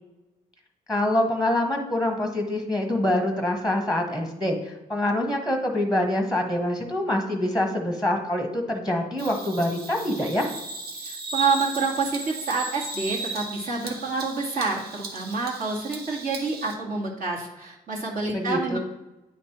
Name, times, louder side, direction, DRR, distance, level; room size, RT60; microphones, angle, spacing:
voice 1, 0.9-10.5 18.3-18.8, left 1 dB, 5° right, 3 dB, 1.1 m, -25 dB
Bird vocalization bird call bird song, 9.2-16.7, right 3 dB, 75° right, 1.2 m, -36 dB
voice 2, 11.0-18.8, right 4 dB, 60° right, -3 dB, 2.1 m, -28 dB
9.5 x 3.3 x 4.3 m, 1.0 s
cardioid pair, 75°, 16 cm